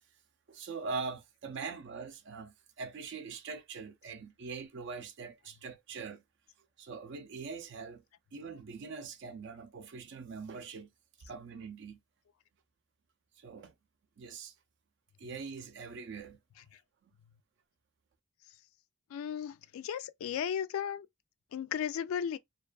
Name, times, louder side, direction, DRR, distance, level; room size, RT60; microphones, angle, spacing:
voice 1, 0.5-6.2 6.8-8.0 8.3-10.9 11.2-12.0 13.4-13.7 14.2-14.5 15.2-16.4, right 4 dB, 60° right, 0.4 m, -42 dB
voice 2, 19.1-21.1 21.5-22.4, left 8 dB, 80° left, 0.3 m, -35 dB
2.4 x 2.3 x 2.2 m
head